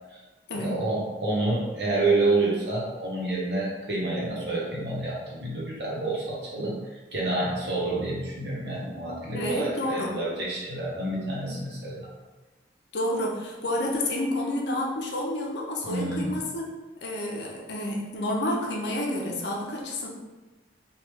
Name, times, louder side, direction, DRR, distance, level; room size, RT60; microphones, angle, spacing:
voice 1, 0.5-6.7 7.1-12.1 15.8-16.3, right 2 dB, 60° right, -5 dB, 1.0 m, -28 dB
voice 2, 9.3-10.1 12.9-16.7 17.0-20.1, left 1 dB, 65° left, -1 dB, 0.6 m, -29 dB
3.2 x 2.4 x 3.3 m, 1.2 s
head